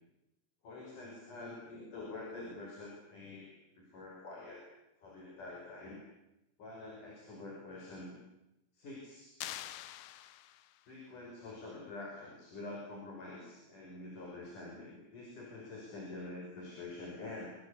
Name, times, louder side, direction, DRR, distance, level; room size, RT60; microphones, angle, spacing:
voice 1, 0.6-3.5 3.8-4.6 5.0-6.0 6.6-8.1 8.7-9.4 10.9-17.5, left 2 dB, 40° left, -1 dB, 7.0 m, -46 dB
sound 1, 9.4-10.9, left 13 dB, 85° left, 3.6 m, -45 dB
26.5 x 25.5 x 8.4 m, 0.93 s
omnidirectional pair, 5.5 m